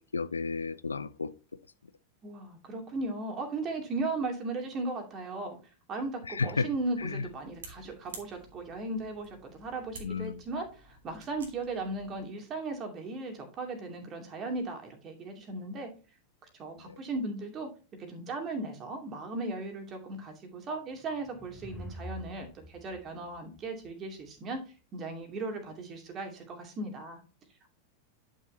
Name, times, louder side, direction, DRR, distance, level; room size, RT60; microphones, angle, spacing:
voice 1, 0.0-1.3 6.3-6.7 7.0-7.3 10.0-10.4 16.8-17.0, left 4 dB, 75° left, 0.4 m, -33 dB
voice 2, 2.2-5.6 5.9-15.9 16.6-17.7 18.0-24.6 24.9-27.2, right 2 dB, 30° right, 2.6 m, -37 dB
sound 1, 6.8-12.2, right 3 dB, 65° right, 2.4 m, -51 dB
sound 2, 20.8-24.3, equal, 5° left, 1.0 m, -47 dB
10.5 x 6.3 x 2.7 m
figure-of-eight pair, 90°, 0 cm